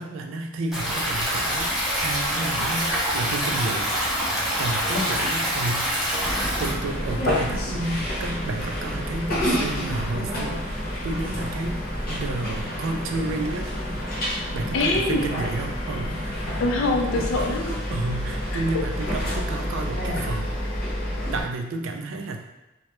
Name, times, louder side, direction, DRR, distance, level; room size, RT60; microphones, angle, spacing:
voice 1, 0.0-3.9 4.6-6.0 6.6-11.8 12.1-13.7 14.5-16.4 17.9-20.5 21.3-22.4, right 2 dB, 70° right, 3 dB, 0.3 m, -31 dB
Stream, 0.7-6.7, equal, ahead, 0.5 m, -25 dB
sound 1, 6.2-21.4, equal, 50° left, 0.7 m, -29 dB
voice 2, 14.7-15.3 16.6-17.8 18.5-18.8, left 2 dB, 65° left, 1 dB, 0.4 m, -24 dB
2.2 x 2.0 x 2.9 m, 0.97 s
head